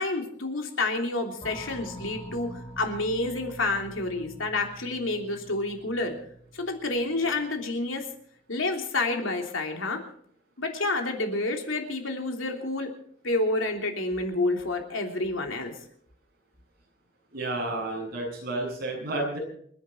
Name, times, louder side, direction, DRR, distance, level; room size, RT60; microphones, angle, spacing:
voice 1, 0.0-2.5 2.8-6.1 6.5-8.1 8.5-10.0 10.6-12.9 13.2-15.7, left 2 dB, 90° left, 3 dB, 3.2 m, -29 dB
sound 1, 1.4-7.7, right 1 dB, 30° left, 2.1 m, -45 dB
voice 2, 17.3-19.4, right 2 dB, 50° right, -1 dB, 7.7 m, -31 dB
28.5 x 10.5 x 4.4 m, 0.64 s
head